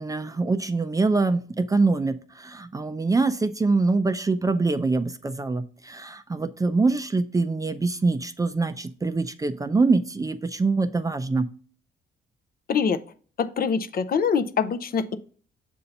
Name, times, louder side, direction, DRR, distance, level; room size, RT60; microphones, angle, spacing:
voice 1, 0.0-11.5, right 3 dB, 15° right, 9 dB, 0.4 m, -24 dB
voice 2, 12.7-13.0 13.4-15.2, left 6 dB, 50° left, 11 dB, 0.5 m, -24 dB
6.9 x 2.7 x 5.2 m, 0.42 s
cardioid pair, 90°, 20 cm